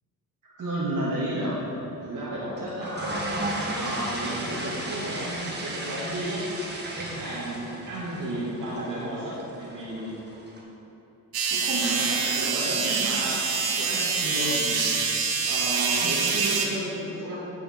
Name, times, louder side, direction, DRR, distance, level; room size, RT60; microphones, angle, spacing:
voice 1, 0.4-1.6 2.0-3.2 3.7-6.4 6.9-10.2 11.5-13.4 13.7-15.0 15.5-17.4, right 1 dB, 60° right, -9 dB, 2.0 m, -32 dB
sound 1, 2.6-10.6, right 1 dB, 30° right, 1.7 m, -35 dB
sound 2, 11.3-16.7, right 5 dB, 80° right, 1.1 m, -25 dB
9.3 x 6.5 x 4.3 m, 2.9 s
cardioid pair, 65°, 36 cm